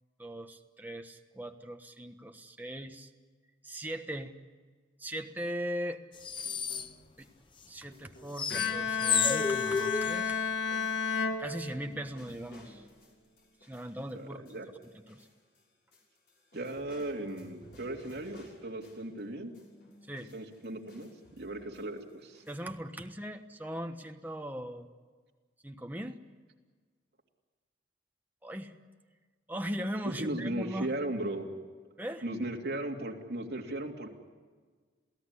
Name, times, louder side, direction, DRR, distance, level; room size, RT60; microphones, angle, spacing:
voice 1, 0.2-3.1 3.6-4.3 5.0-6.0 7.2-7.3 7.7-10.4 11.4-12.8 13.6-14.4 14.8-15.3 20.1-20.3 22.5-24.9 25.6-26.2 28.4-28.7 29.5-30.9 32.0-32.3, equal, 10° right, 4 dB, 1.2 m, -39 dB
sound 1, 6.2-6.9 8.4-10.2, left 6 dB, 25° left, 0.8 m, -30 dB
sound 2, 6.3-7.6 7.9-15.6 15.9-19.2 19.5-22.7, equal, 60° left, 6.2 m, -57 dB
Bowed string instrument, 8.5-12.2, left 6 dB, 85° left, 1.8 m, -32 dB
voice 2, 14.1-14.7 16.5-19.5 20.3-22.4 30.2-31.5 32.2-34.1, right 1 dB, 60° right, 0 dB, 3.0 m, -37 dB
28.0 x 17.0 x 9.9 m, 1.5 s
head